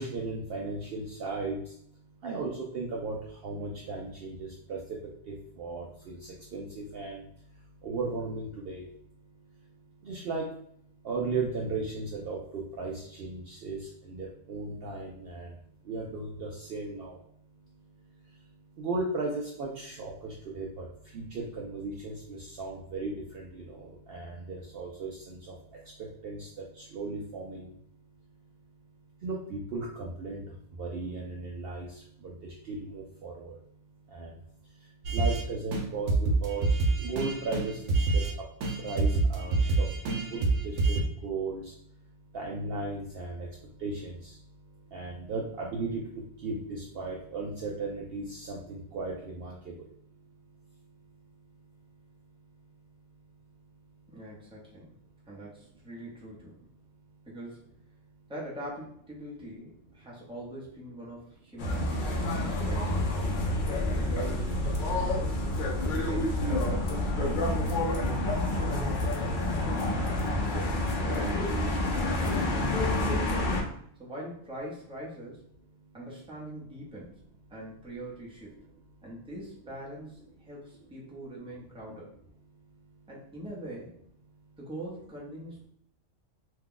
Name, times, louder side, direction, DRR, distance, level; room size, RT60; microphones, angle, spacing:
voice 1, 0.0-1.6 2.2-3.2 3.4-4.8 5.3-6.2 6.5-7.2 7.8-8.9 10.1-10.4 11.0-12.4 12.8-13.8 14.0-15.5 15.9-17.2 18.8-20.9 21.1-25.4 26.2-26.5 26.9-27.7 29.2-30.4 30.8-31.9 32.2-32.3 32.7-33.5 34.1-34.3 35.1-36.7 37.0-38.2 38.8-41.6 42.3-43.5 43.8-44.3 44.9-46.0 46.4-49.7, right 3 dB, 60° right, -2 dB, 0.6 m, -36 dB
sound 1, 35.0-35.4 35.7-35.8 36.1-38.3 38.6-41.0, right 3 dB, 85° right, 1.0 m, -26 dB
voice 2, 54.1-54.9 55.3-56.6 57.3-57.6 58.3-63.1 63.9-64.6 65.0-65.4 65.9-68.3 69.2-70.8 71.1-72.7 74.0-75.4 75.9-77.2 77.5-78.5 79.0-82.1 83.1-83.9 84.6-85.7, right 1 dB, 5° right, -6 dB, 0.7 m, -43 dB
sound 2, 61.6-73.6, left 1 dB, 50° left, 0.6 m, -28 dB
2.8 x 2.3 x 3.6 m, 0.67 s
omnidirectional pair, 1.3 m